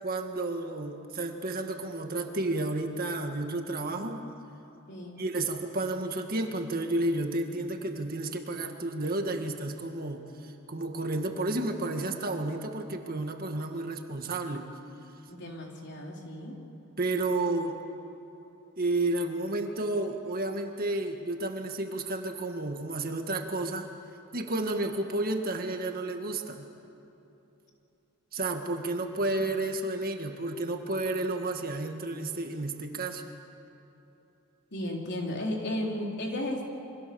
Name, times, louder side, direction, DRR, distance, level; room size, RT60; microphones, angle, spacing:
voice 1, 0.0-4.2 5.2-14.7 17.0-17.8 18.8-23.9 24.3-26.7 28.3-33.2, right 2 dB, 45° right, 4 dB, 1.9 m, -31 dB
voice 2, 4.9-5.2 15.3-16.6 29.4-29.5 34.7-36.7, left 1 dB, 50° left, -1 dB, 4.1 m, -34 dB
28.5 x 25.0 x 7.1 m, 2.9 s
head